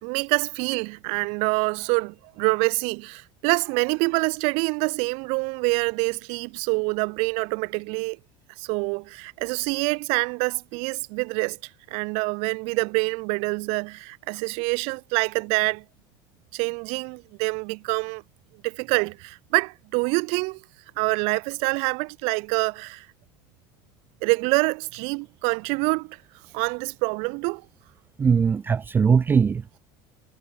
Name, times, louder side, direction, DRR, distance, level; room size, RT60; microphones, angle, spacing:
voice 1, 0.0-8.2 8.6-11.6 11.9-15.8 16.5-18.2 18.6-20.6 21.0-23.1 24.2-26.2 26.5-27.6, right 33 dB, 65° right, 1.2 m, -26 dB
voice 2, 28.2-29.8, right 6 dB, 20° right, 0.5 m, -20 dB
cardioid pair, 145°, 11 cm